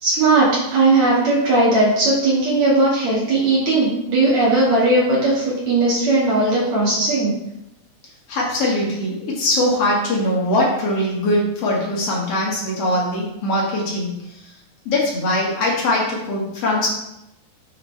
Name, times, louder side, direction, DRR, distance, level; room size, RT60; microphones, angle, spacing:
voice 1, 0.0-7.3, right 2 dB, 50° right, -8 dB, 3.2 m, -17 dB
voice 2, 8.3-14.1 14.9-16.9, left 1 dB, 45° left, -3 dB, 2.6 m, -21 dB
10.5 x 5.7 x 3.4 m, 0.87 s
omnidirectional pair, 4.3 m